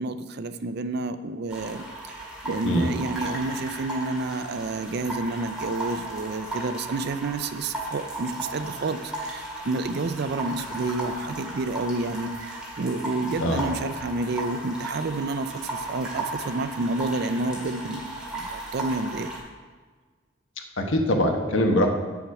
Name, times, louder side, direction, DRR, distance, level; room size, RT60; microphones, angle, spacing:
voice 1, 0.0-1.8 2.4-18.0 18.3-19.3, right 3 dB, 55° right, 11 dB, 0.5 m, -29 dB
sound 1, 1.5-19.4, right 1 dB, 5° right, 2.0 m, -35 dB
voice 2, 2.6-3.0 13.4-13.8 20.8-21.9, equal, 80° left, 3 dB, 1.1 m, -23 dB
8.2 x 7.2 x 4.8 m, 1.5 s
head